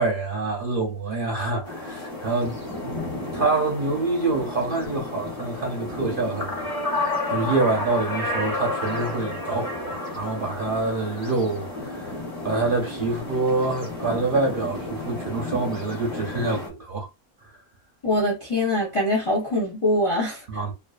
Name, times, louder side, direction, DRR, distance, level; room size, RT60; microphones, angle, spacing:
voice 1, 0.0-2.6 2.8-12.1 12.4-17.1 20.5-20.7, right 3 dB, 50° right, 0.7 m, -26 dB
sound 1, 1.6-16.7, left 2 dB, 30° left, 0.9 m, -31 dB
voice 2, 18.0-20.4, left 1 dB, 60° left, 0.3 m, -23 dB
2.5 x 2.3 x 2.3 m
omnidirectional pair, 1.5 m